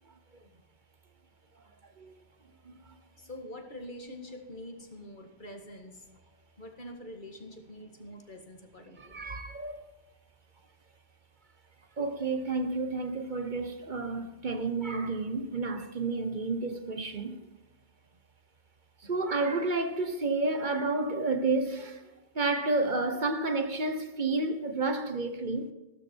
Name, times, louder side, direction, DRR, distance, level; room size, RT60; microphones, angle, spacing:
voice 1, 3.2-6.1 6.6-9.2, left 1 dB, 50° left, 2.0 m, -45 dB
voice 2, 9.0-9.8 12.0-17.4 19.0-22.1 22.3-25.7, right 3 dB, 45° right, 1.3 m, -30 dB
16.0 x 12.5 x 4.6 m
omnidirectional pair, 1.1 m